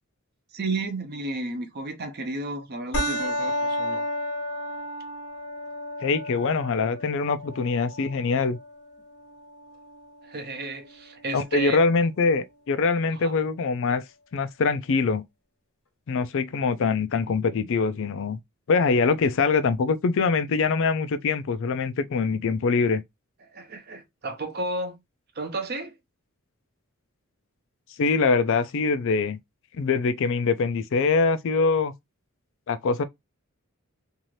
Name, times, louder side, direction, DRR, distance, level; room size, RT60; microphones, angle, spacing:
voice 1, 0.5-4.1 10.2-11.8 13.1-13.3 23.5-25.0 25.4-25.9, right 2 dB, 45° right, 0.7 m, -32 dB
sound 1, 2.9-11.9, equal, 80° left, 1.2 m, -33 dB
voice 2, 6.0-8.6 11.3-14.0 14.3-15.2 16.1-18.4 18.7-23.0 28.0-29.4 29.8-31.9 32.7-33.0, left 4 dB, 60° left, 0.4 m, -23 dB
2.7 x 2.5 x 3.1 m
head